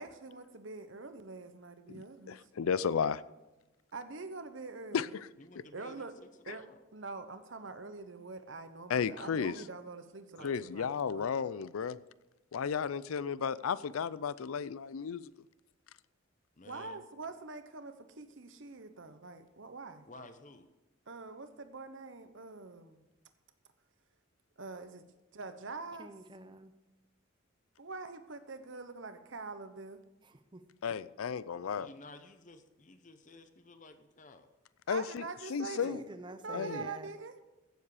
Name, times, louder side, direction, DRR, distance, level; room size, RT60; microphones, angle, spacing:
voice 1, 0.0-2.4 3.9-5.1 5.7-6.1 6.5-6.6 6.9-11.5 16.6-20.0 21.1-23.0 24.6-25.0 25.3-26.1 27.8-30.0 34.9-37.3, right 3 dB, 60° right, 0.9 m, -45 dB
voice 2, 1.9-3.2 4.9-5.1 6.5-6.6 8.9-9.5 10.4-12.0 12.5-15.3 30.8-31.9 34.9-36.0 36.5-36.9, left 6 dB, 80° left, 0.4 m, -33 dB
voice 3, 5.4-6.8 10.4-10.6 16.6-17.0 20.0-20.7 31.6-34.5, left 2 dB, 35° left, 0.7 m, -54 dB
voice 4, 26.0-26.7 30.2-30.6 35.9-37.1, right 2 dB, 20° right, 0.6 m, -47 dB
15.5 x 7.3 x 4.9 m
head